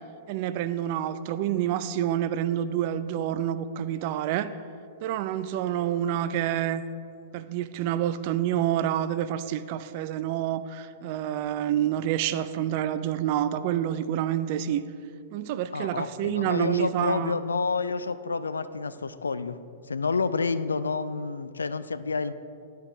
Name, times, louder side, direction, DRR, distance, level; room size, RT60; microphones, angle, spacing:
voice 1, 0.3-4.5 5.0-6.8 7.3-14.8 15.3-17.4, right 11 dB, 45° right, 12 dB, 0.3 m, -28 dB
voice 2, 15.7-19.6 19.9-22.3, left 4 dB, 75° left, 13 dB, 0.3 m, -29 dB
11.5 x 4.6 x 3.8 m, 2.4 s
figure-of-eight pair, 100°, 0 cm